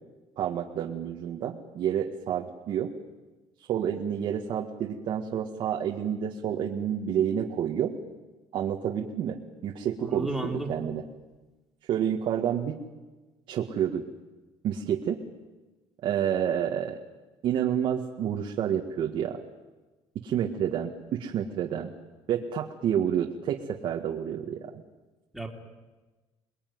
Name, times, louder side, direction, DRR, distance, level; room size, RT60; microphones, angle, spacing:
voice 1, 0.4-2.9 3.7-7.9 8.5-11.0 11.9-12.8 13.5-14.1 14.6-15.2 16.0-17.0 17.4-19.4 20.2-21.9 22.3-24.8, right 9 dB, 55° right, 2 dB, 1.8 m, -29 dB
voice 2, 10.0-10.7 25.3-25.5, right 1 dB, ahead, 1 dB, 3.4 m, -32 dB
28.0 x 21.0 x 9.5 m, 1.2 s
cardioid pair, 145°, 10 cm